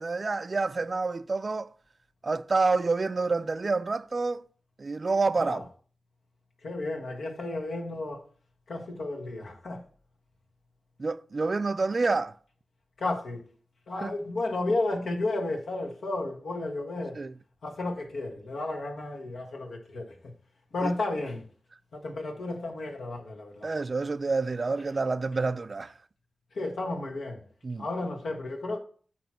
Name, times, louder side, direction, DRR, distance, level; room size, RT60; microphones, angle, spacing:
voice 1, 0.0-1.7 2.2-4.4 4.8-5.6 11.0-12.4 14.0-14.1 17.2-17.3 20.8-20.9 23.6-25.9 27.6-27.9, right 3 dB, 45° right, 0.3 m, -28 dB
voice 2, 6.6-8.3 8.7-9.9 13.0-13.5 13.9-17.2 17.6-20.3 20.7-21.5 21.9-23.7 26.5-27.4 27.8-28.8, left 2 dB, 90° left, 1.5 m, -33 dB
8.9 x 3.0 x 6.0 m
wide cardioid pair, 85°, 0 cm